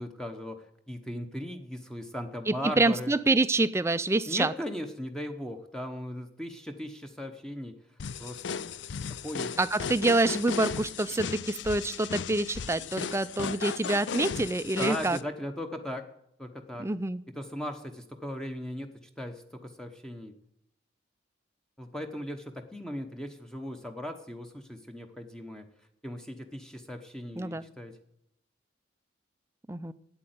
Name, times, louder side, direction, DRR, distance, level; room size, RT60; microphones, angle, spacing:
voice 1, 0.0-3.1 4.3-7.8 8.2-8.7 9.1-9.6 14.8-16.0 16.4-16.9 17.3-20.3 21.8-25.7 26.0-28.0, equal, 5° left, 5 dB, 0.9 m, -38 dB
voice 2, 2.5-4.5 9.6-15.2 16.8-17.2 27.4-27.6 29.7-29.9, right 2 dB, 15° right, 14 dB, 0.4 m, -27 dB
sound 1, 8.0-15.2, left 6 dB, 70° left, 0.5 m, -36 dB
8.8 x 8.4 x 9.2 m, 0.78 s
head